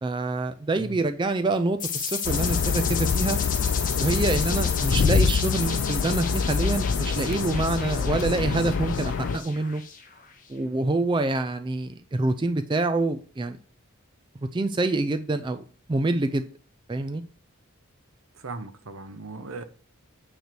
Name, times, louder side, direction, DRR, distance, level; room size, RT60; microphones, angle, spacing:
voice 1, 0.0-3.4 4.0-9.8 10.5-13.6 14.5-15.6 15.9-16.4 16.9-17.2, right 2 dB, 20° right, 0.3 m, -26 dB
sound 1, 1.8-10.3, left 7 dB, 35° left, 1.5 m, -33 dB
sound 2, 2.2-9.4, left 5 dB, 55° left, 0.4 m, -25 dB
voice 2, 18.3-19.6, right 3 dB, 70° right, 0.9 m, -38 dB
9.2 x 3.2 x 6.7 m
head